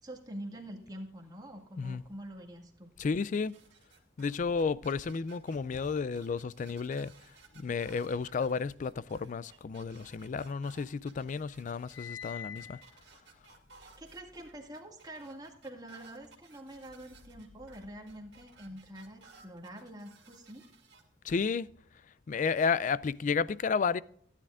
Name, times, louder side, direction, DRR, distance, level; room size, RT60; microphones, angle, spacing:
voice 1, 0.0-2.9 13.8-20.7, right 1 dB, 20° right, 1.9 m, -46 dB
voice 2, 3.0-3.6 4.2-7.1 7.6-12.8 21.2-21.7 22.3-24.0, left 5 dB, 40° left, 0.3 m, -32 dB
sound 1, 3.0-21.0, right 5 dB, 65° right, 2.3 m, -59 dB
sound 2, 10.0-11.0 11.3-14.7, left 8 dB, 80° left, 0.9 m, -48 dB
16.0 x 10.0 x 2.5 m
head